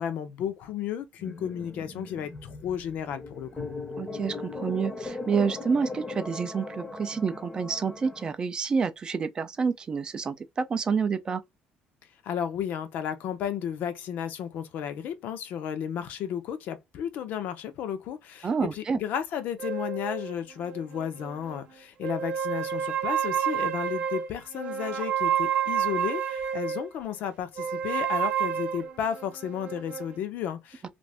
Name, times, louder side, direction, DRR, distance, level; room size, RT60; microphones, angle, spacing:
voice 1, 0.0-3.7 12.2-30.9, left 9 dB, 60° left, 0.6 m, -33 dB
sound 1, 1.2-8.3, left 3 dB, 15° left, 0.7 m, -39 dB
voice 2, 4.0-11.4 18.4-19.0 30.8-30.9, right 5 dB, 25° right, 0.4 m, -28 dB
sound 2, 19.6-21.6 22.0-26.9 27.6-30.2, right 9 dB, 45° right, 0.8 m, -30 dB
2.5 x 2.5 x 3.3 m
cardioid pair, 145°, 3 cm